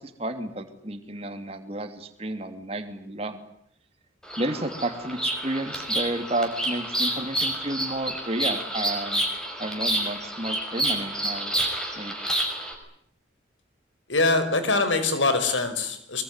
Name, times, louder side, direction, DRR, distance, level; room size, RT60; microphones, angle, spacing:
voice 1, 0.0-3.4 4.4-9.2 9.6-11.5 12.0-12.2, right 1 dB, 30° right, 7 dB, 2.9 m, -31 dB
Bird vocalization bird call bird song, 4.2-12.7, right 1 dB, 5° left, 5.8 m, -29 dB
voice 2, 14.1-16.2, left 3 dB, 90° left, 10 dB, 5.1 m, -23 dB
23.5 x 23.0 x 9.8 m, 0.68 s
head